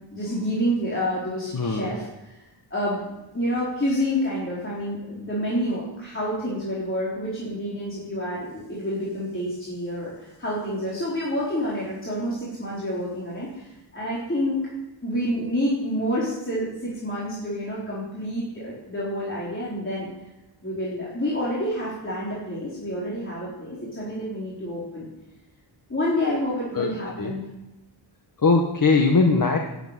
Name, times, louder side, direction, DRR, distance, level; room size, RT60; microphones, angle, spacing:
voice 1, 0.1-2.4 2.7-14.7 15.0-20.1 20.6-25.1 25.9-27.5, equal, 25° left, -7 dB, 4.3 m, -28 dB
voice 2, 1.5-1.9 26.7-27.3 28.4-29.6, left 4 dB, 45° left, 2 dB, 1.5 m, -20 dB
12.0 x 9.1 x 9.3 m, 1.0 s
wide cardioid pair, 115°, 47 cm